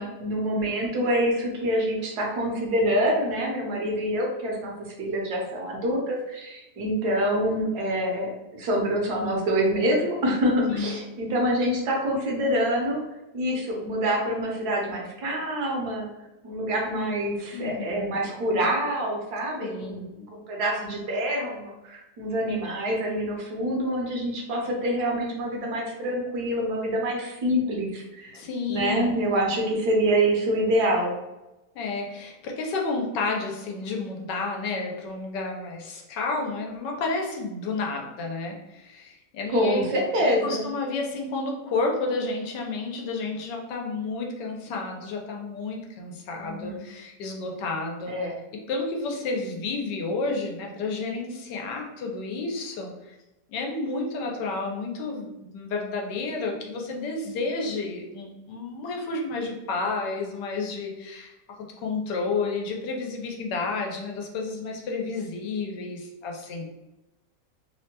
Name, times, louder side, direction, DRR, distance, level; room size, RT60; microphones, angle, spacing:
voice 1, 0.0-4.7 5.0-13.0 13.3-16.1 16.4-28.4 28.7-31.1 39.5-40.6 46.4-46.8 48.1-48.3, equal, 70° right, -1 dB, 1.2 m, -26 dB
voice 2, 10.6-11.0 17.5-18.2 19.6-20.1 28.3-29.1 31.7-39.9 40.2-48.1 48.7-53.1 53.5-61.3 61.8-66.7, left 3 dB, 90° left, 1 dB, 1.3 m, -31 dB
3.4 x 2.1 x 2.8 m, 0.97 s
omnidirectional pair, 1.9 m